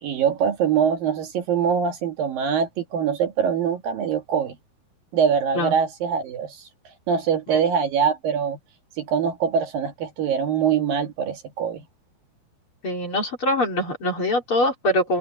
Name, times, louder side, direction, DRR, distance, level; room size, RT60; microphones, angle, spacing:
voice 1, 0.0-4.6 5.1-6.6 7.1-8.6 9.0-11.8, right 7 dB, 65° right, 3.3 m, -23 dB
voice 2, 12.8-15.2, left 1 dB, 35° left, 3.5 m, -23 dB
omnidirectional pair, 4.7 m